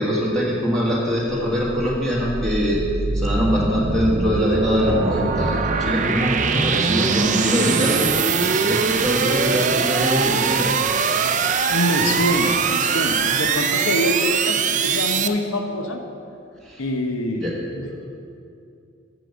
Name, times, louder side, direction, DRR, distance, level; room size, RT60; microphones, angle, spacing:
voice 1, 0.0-2.8 3.1-8.1 8.4-10.7 16.6-16.8 17.4-17.5, equal, 5° left, -7 dB, 1.5 m, -23 dB
sound 1, 1.3-15.3, right 5 dB, 40° right, 0.4 m, -22 dB
voice 2, 11.7-16.0 16.8-17.9, left 1 dB, 85° left, 4 dB, 0.9 m, -25 dB
7.7 x 6.9 x 7.0 m, 2.5 s
head